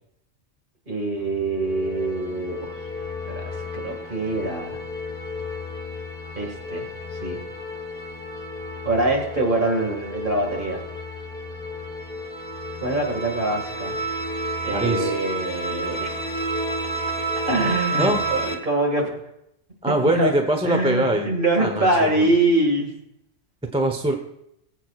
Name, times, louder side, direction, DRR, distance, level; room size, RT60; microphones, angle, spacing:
voice 1, 0.9-2.7 3.3-4.8 6.4-6.9 7.2-7.4 8.8-10.8 12.8-14.0 14.6-16.3 17.4-19.2 19.9-20.3 20.6-22.9, right 2 dB, 40° right, 0 dB, 2.2 m, -24 dB
sound 1, 1.2-18.5, right 1 dB, 45° left, 2.0 m, -31 dB
voice 2, 14.7-15.1 18.0-18.2 19.8-21.3 21.6-22.3 23.7-24.1, right 1 dB, 5° right, 4 dB, 0.8 m, -22 dB
22.5 x 8.1 x 2.4 m, 0.78 s
omnidirectional pair, 1.3 m